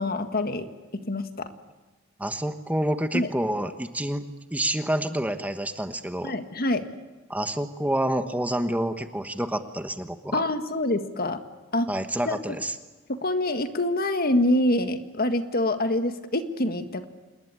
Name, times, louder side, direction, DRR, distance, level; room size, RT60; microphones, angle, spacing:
voice 1, 0.0-1.5 3.1-3.3 6.2-6.8 10.3-11.4 11.7-11.9 12.3-12.4 13.1-17.1, left 1 dB, 50° left, 9 dB, 1.8 m, -26 dB
voice 2, 2.2-4.2 4.5-6.3 7.3-10.4 11.9-12.7, right 1 dB, 10° right, 8 dB, 1.2 m, -28 dB
27.5 x 20.5 x 9.8 m, 1.3 s
head